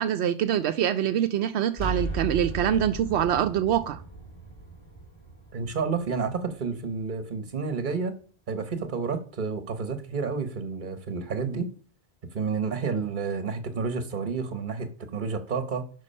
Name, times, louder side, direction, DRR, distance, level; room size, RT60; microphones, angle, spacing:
voice 1, 0.0-4.0, right 10 dB, 85° right, 0.8 m, -25 dB
sound 1, 1.7-7.4, right 3 dB, 25° left, 3.7 m, -37 dB
voice 2, 5.5-8.2 8.5-11.7 12.3-15.9, right 5 dB, 50° right, 1.2 m, -30 dB
10.5 x 3.9 x 5.5 m
omnidirectional pair, 1.1 m